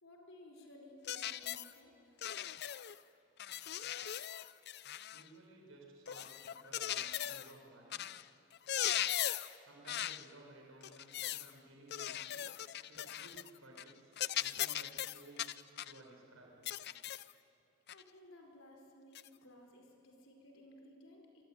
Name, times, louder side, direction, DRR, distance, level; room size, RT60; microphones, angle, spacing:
voice 1, 0.0-2.2 17.9-21.5, left 1 dB, 70° left, 2 dB, 4.8 m, -58 dB
sound 1, 1.1-1.7 2.2-3.0 3.4-5.3 6.1-7.5 7.9-8.2 8.5-9.6 9.9-10.3 10.8-11.5 11.9-13.5 13.8-13.9 14.2-16.0 16.7-17.3 17.9-18.0 19.1-19.3, left 11 dB, 50° left, 0.5 m, -39 dB
voice 2, 5.1-8.0 9.7-12.4 12.9-15.5 15.8-16.7, right 2 dB, 80° right, 0 dB, 5.9 m, -58 dB
26.5 x 22.0 x 9.5 m, 2.8 s
head